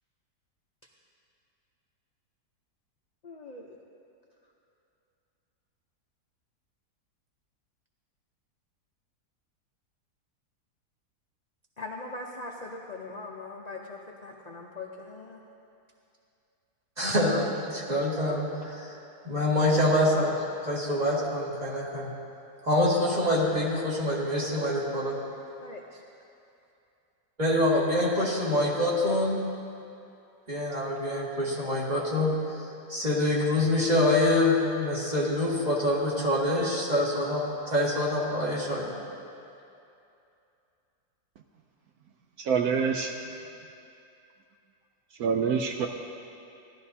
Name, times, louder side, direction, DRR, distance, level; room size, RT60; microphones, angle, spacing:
voice 1, 3.2-3.8 11.8-15.4 25.6-26.0, left 3 dB, 50° left, -1 dB, 0.4 m, -41 dB
voice 2, 17.0-18.9 19.2-20.4 20.6-22.1 22.6-25.1 27.4-29.4 30.5-32.3 32.9-38.9, left 1 dB, 25° right, -6 dB, 2.1 m, -25 dB
voice 3, 42.4-43.1 45.2-45.9, right 6 dB, 70° right, 3 dB, 1.0 m, -26 dB
17.0 x 12.0 x 2.7 m, 2.6 s
omnidirectional pair, 1.7 m